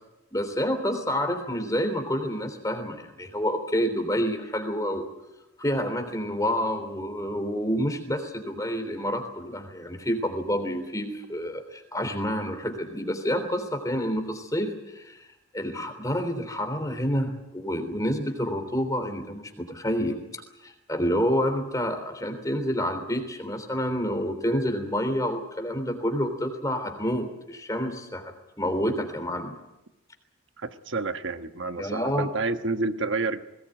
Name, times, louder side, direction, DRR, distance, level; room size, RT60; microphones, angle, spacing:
voice 1, 0.3-5.1 5.6-28.3 28.6-29.5 31.8-32.3, equal, 15° left, 7 dB, 3.3 m, -28 dB
voice 2, 30.6-33.4, right 3 dB, 60° right, 9 dB, 1.3 m, -29 dB
21.0 x 19.0 x 9.1 m, 0.96 s
head